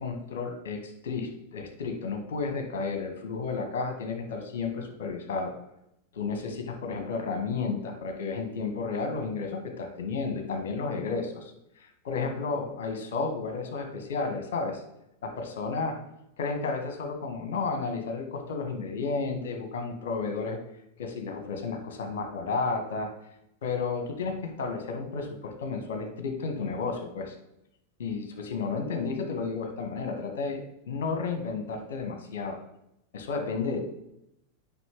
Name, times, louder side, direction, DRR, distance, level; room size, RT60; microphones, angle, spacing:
voice 1, 0.0-5.5 6.1-11.5 11.8-14.8 15.2-15.9 16.4-20.6 21.0-23.1 23.6-27.3 28.0-32.6 33.1-33.8, left 4 dB, 60° left, 5 dB, 1.5 m, -32 dB
7.9 x 5.3 x 4.5 m, 0.82 s
figure-of-eight pair, 90°, 0 cm